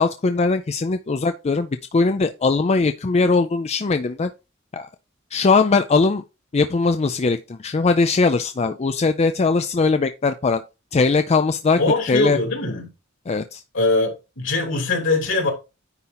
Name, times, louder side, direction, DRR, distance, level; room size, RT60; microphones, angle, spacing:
voice 1, 0.0-4.3 4.7-4.9 5.3-6.2 6.5-10.6 10.9-11.8 12.1-12.4 13.3-13.6, left 4 dB, 30° left, 0.4 m, -20 dB
voice 2, 11.8-12.9 13.7-14.1 14.4-15.5, left 2 dB, 65° left, 3.3 m, -21 dB
9.7 x 4.3 x 3.9 m
head